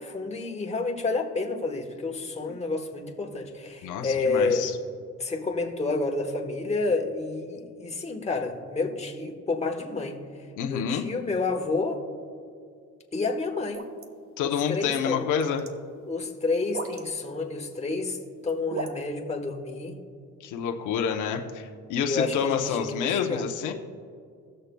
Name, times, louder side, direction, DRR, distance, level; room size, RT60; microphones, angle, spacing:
voice 1, 0.0-4.7 5.2-10.2 10.7-12.0 13.1-13.9 14.4-15.3 16.0-18.2 18.4-20.0 22.0-23.5, left 3 dB, 20° left, 2 dB, 1.1 m, -29 dB
voice 2, 3.8-4.8 10.6-11.0 14.4-15.7 20.4-23.7, left 7 dB, 85° left, 3 dB, 0.8 m, -28 dB
sound 1, 13.7-14.1 15.2-15.7 16.7-17.0 17.9-18.1 18.5-18.9, right 3 dB, 45° right, 0.9 m, -35 dB
18.0 x 6.6 x 2.3 m, 2.2 s
cardioid pair, 90°, 30 cm